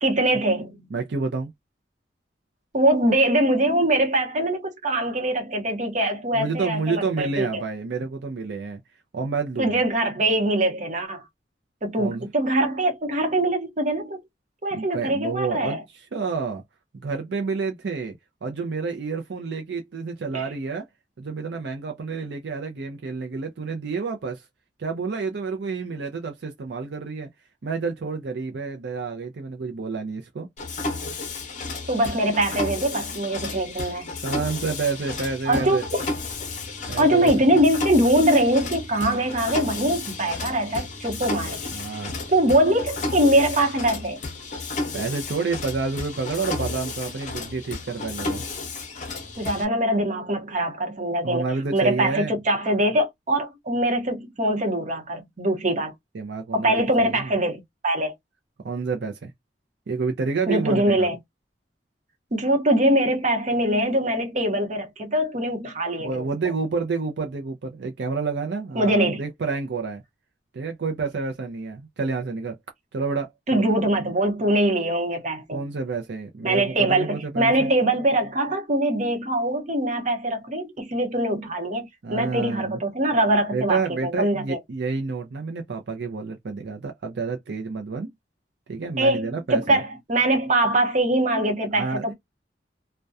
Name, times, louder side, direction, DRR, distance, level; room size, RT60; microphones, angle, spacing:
voice 1, 0.0-0.9 2.7-7.6 9.6-11.2 11.8-14.2 14.6-15.8 20.3-20.4 31.9-34.2 35.5-36.0 37.0-41.8 42.3-44.2 49.4-51.5 51.7-55.9 56.5-58.1 60.5-61.2 62.3-66.2 68.8-69.2 73.5-75.6 76.4-84.6 89.0-92.1, right 1 dB, 45° right, 0.9 m, -23 dB
voice 2, 0.9-1.5 6.3-8.8 9.1-9.8 12.0-12.3 14.7-16.6 16.9-20.9 21.2-24.5 24.8-27.3 27.6-30.5 34.2-35.8 36.9-37.5 41.7-42.2 44.9-48.4 51.2-52.3 56.1-57.3 58.6-59.3 59.9-61.1 66.0-70.0 70.5-72.6 72.9-73.6 75.5-77.7 82.0-82.8 83.5-88.1 88.7-89.8 91.7-92.0, right 4 dB, 70° right, 0.5 m, -29 dB
Mechanisms, 30.6-49.6, left 3 dB, 45° left, 0.6 m, -33 dB
2.3 x 2.1 x 2.5 m
head